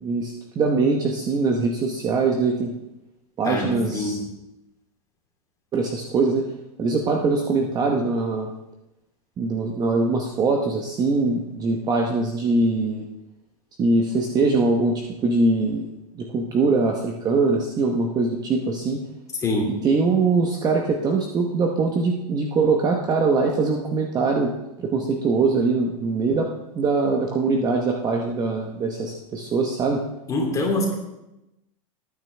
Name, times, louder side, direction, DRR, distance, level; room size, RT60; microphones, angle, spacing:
voice 1, 0.0-2.7 3.4-4.2 5.7-6.4 6.8-8.5 9.4-13.1 13.8-15.9 16.2-19.0 19.8-26.5 26.7-30.0, right 3 dB, 20° right, 2 dB, 1.0 m, -22 dB
voice 2, 3.4-4.3 19.4-19.8 30.3-30.9, left 1 dB, 15° left, -1 dB, 3.0 m, -25 dB
18.5 x 9.4 x 3.4 m, 0.92 s
supercardioid pair, 155°, 19 cm